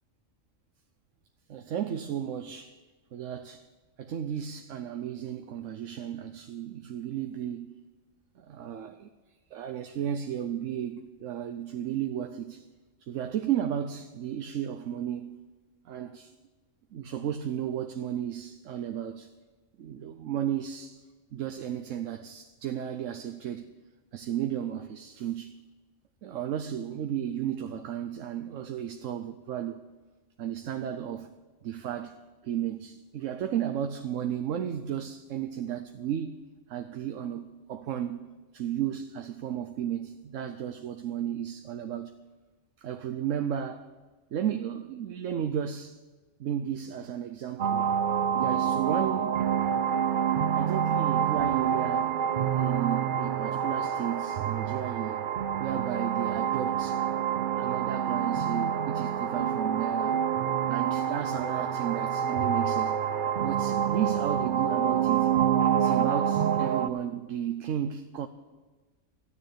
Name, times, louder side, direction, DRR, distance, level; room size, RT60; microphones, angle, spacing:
voice 1, 1.5-2.8 3.1-3.7 4.0-7.8 8.4-9.1 9.5-12.6 13.1-15.4 15.9-16.3 16.9-19.3 19.8-21.0 21.3-23.7 24.1-25.5 26.2-29.8 30.4-31.3 31.6-32.2 32.4-36.4 36.7-42.1 42.8-43.9 44.3-46.0 46.4-47.9 48.4-49.4 50.5-52.2 52.6-55.3 55.6-57.0 57.6-60.2 60.7-63.0 63.4-65.3 65.8-68.3, right 10 dB, 90° right, 1.1 m, -34 dB
sound 1, 47.6-66.9, right 8 dB, 55° right, 0.6 m, -27 dB
13.5 x 9.7 x 8.6 m
omnidirectional pair, 1.3 m